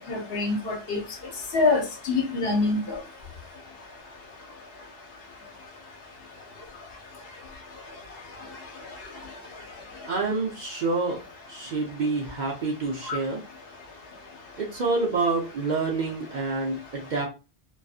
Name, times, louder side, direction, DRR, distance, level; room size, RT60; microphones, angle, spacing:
voice 1, 0.1-1.0 1.5-2.8 13.1-13.2, left 3 dB, 65° left, 2 dB, 0.8 m, -25 dB
voice 2, 10.1-11.2 11.5-13.4 14.6-17.3, right 3 dB, 55° right, -1 dB, 0.6 m, -27 dB
2.5 x 2.3 x 2.4 m, 0.30 s
omnidirectional pair, 1.1 m